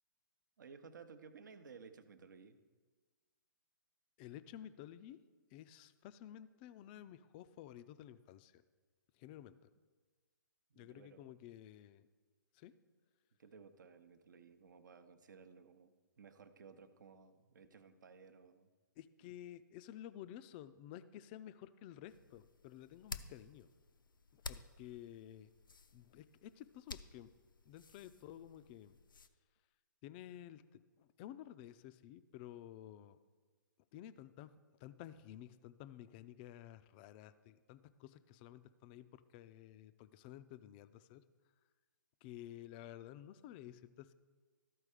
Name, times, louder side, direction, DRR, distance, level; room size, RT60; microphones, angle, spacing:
voice 1, 0.6-2.6 10.7-11.3 13.4-18.7, right 5 dB, 65° right, 10 dB, 0.8 m, -58 dB
voice 2, 4.2-5.2 5.5-8.6 9.1-9.7 10.8-12.1 12.5-12.7 19.0-23.7 24.3-25.5 25.9-27.3 27.7-29.0 30.0-30.6 31.0-33.2 33.9-34.5 34.8-41.2 42.2-44.1, left 12 dB, 30° left, 13 dB, 0.4 m, -53 dB
sound 1, 22.1-29.3, left 4 dB, 80° left, 0.5 m, -53 dB
13.5 x 4.5 x 4.9 m, 1.4 s
figure-of-eight pair, 130°, 11 cm